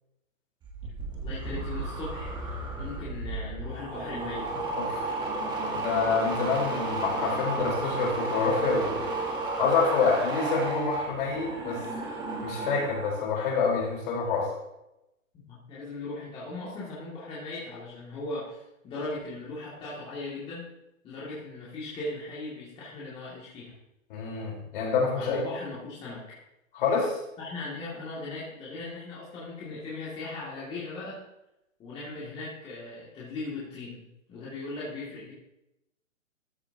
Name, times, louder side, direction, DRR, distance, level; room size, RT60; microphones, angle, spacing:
sound 1, 0.6-13.3 13.6-14.0, right 3 dB, 10° right, 1.3 m, -33 dB
voice 1, 1.1-4.5 15.3-20.6 21.0-23.7 25.2-26.4 27.4-31.2 31.8-35.3, left 2 dB, 15° left, -8 dB, 2.4 m, -38 dB
voice 2, 4.8-5.2 5.7-9.0 9.6-11.8 12.4-14.5 24.1-25.4 26.7-27.2, left 4 dB, 40° left, -2 dB, 4.2 m, -27 dB
13.5 x 11.5 x 2.9 m, 0.90 s
hypercardioid pair, 155°, 40 cm